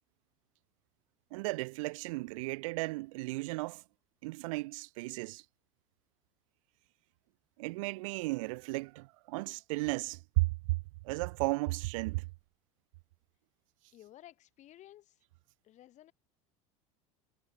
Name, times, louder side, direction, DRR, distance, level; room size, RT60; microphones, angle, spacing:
voice 1, 1.3-3.8 4.2-5.4 7.6-10.5 11.0-12.2, right 23 dB, 80° right, 0.5 m, -34 dB
voice 2, 13.9-15.2 15.6-16.1, left 13 dB, 45° left, 2.0 m, -55 dB
supercardioid pair, 110°, 17 cm